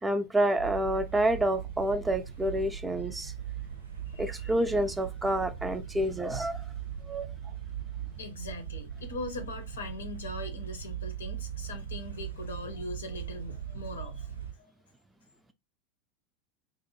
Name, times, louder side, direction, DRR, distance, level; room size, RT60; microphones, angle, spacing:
voice 1, 0.0-3.3 4.2-6.7 7.0-7.3, right 1 dB, 10° right, 0.3 m, -28 dB
sound 1, 0.6-14.5, right 9 dB, 85° right, 0.5 m, -39 dB
voice 2, 4.1-4.5 8.2-14.7, left 2 dB, 70° left, 0.5 m, -41 dB
2.5 x 2.1 x 2.9 m
figure-of-eight pair, 80°, 0 cm